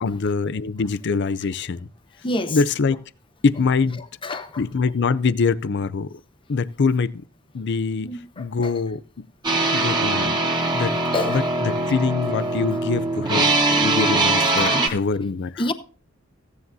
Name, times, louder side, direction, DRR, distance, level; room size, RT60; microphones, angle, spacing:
voice 1, 0.0-1.9 2.5-3.0 3.4-4.0 4.6-6.2 6.5-7.2 7.5-8.1 8.4-9.0 9.7-10.3 10.7-11.0 11.3-15.7, left 4 dB, 60° left, 0.5 m, -24 dB
voice 2, 2.2-2.6 4.0-4.6 8.0-8.8 9.7-9.8 10.5-10.6 11.1-11.5 12.7-12.8 14.5-15.0 15.6-15.7, left 2 dB, 25° left, 0.8 m, -29 dB
sound 1, 9.4-14.9, right 2 dB, 20° right, 1.4 m, -22 dB
15.0 x 9.6 x 2.7 m
head